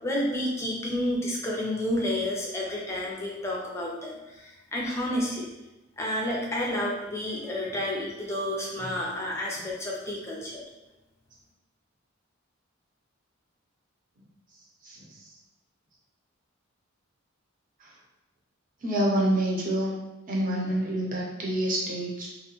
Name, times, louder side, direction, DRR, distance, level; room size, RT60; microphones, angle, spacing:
voice 1, 0.0-5.5 6.0-10.6, left 1 dB, 15° left, -3 dB, 0.5 m, -30 dB
voice 2, 18.8-19.9 20.3-22.3, right 1 dB, 40° right, -4 dB, 0.6 m, -27 dB
2.4 x 2.1 x 2.9 m, 1.0 s
head